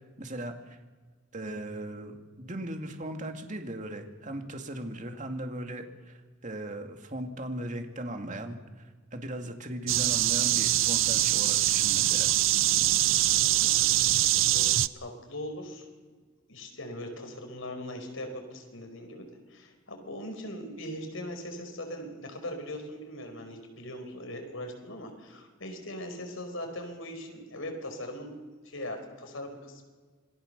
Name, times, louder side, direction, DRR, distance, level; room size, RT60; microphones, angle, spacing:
voice 1, 0.2-0.8 1.3-12.3, right 1 dB, 35° right, 5 dB, 2.4 m, -38 dB
sound 1, 9.9-14.9, right 14 dB, 70° right, 0.7 m, -24 dB
voice 2, 13.2-14.7 15.0-15.9 16.5-19.2 19.5-28.3 28.6-29.8, left 1 dB, 75° left, 4 dB, 4.8 m, -40 dB
27.0 x 20.0 x 6.8 m, 1.5 s
head